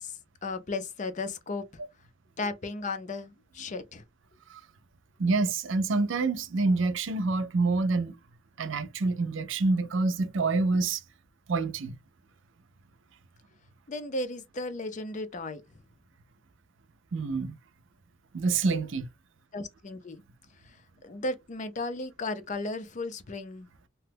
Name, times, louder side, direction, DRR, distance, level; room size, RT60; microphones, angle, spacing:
voice 1, 0.0-1.6 2.4-4.0 13.9-15.8 19.5-20.2 20.6-23.7, left 2 dB, 35° left, 0.5 m, -35 dB
voice 2, 5.2-8.2 8.6-11.0 11.5-12.0 17.1-17.6 18.3-19.1, right 3 dB, 70° right, 0.5 m, -27 dB
2.9 x 2.2 x 3.3 m
head